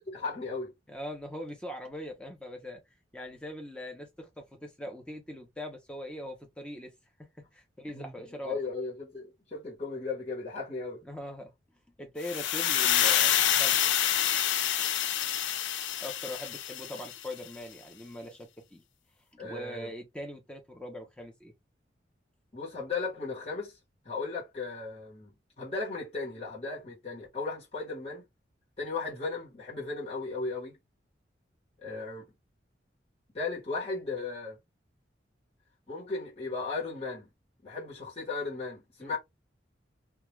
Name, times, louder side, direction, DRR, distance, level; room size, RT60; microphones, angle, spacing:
voice 1, 0.1-0.7 7.9-8.1 8.4-11.0 19.4-19.9 22.5-23.8 24.0-25.3 25.6-28.2 28.8-30.8 31.8-32.2 33.3-34.6 35.9-37.3 37.6-39.2, left 3 dB, 35° left, 1.1 m, -36 dB
voice 2, 0.9-2.8 3.1-6.9 7.2-8.6 11.0-11.5 12.0-13.9 16.0-18.8 19.4-21.5 39.0-39.2, left 1 dB, 5° left, 0.7 m, -41 dB
sound 1, 12.2-17.3, left 11 dB, 75° left, 0.4 m, -27 dB
2.3 x 2.3 x 3.1 m
head